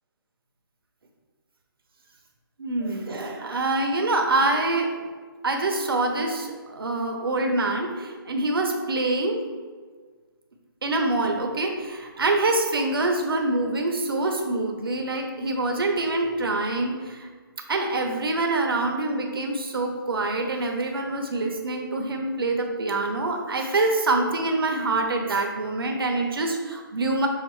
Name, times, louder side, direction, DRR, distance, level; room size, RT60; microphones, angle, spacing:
voice 1, 2.6-5.1 5.4-9.4 10.8-17.3 17.7-27.3, right 2 dB, 75° right, 3 dB, 0.8 m, -25 dB
6.4 x 2.5 x 3.1 m, 1.5 s
hypercardioid pair, 180°, 12 cm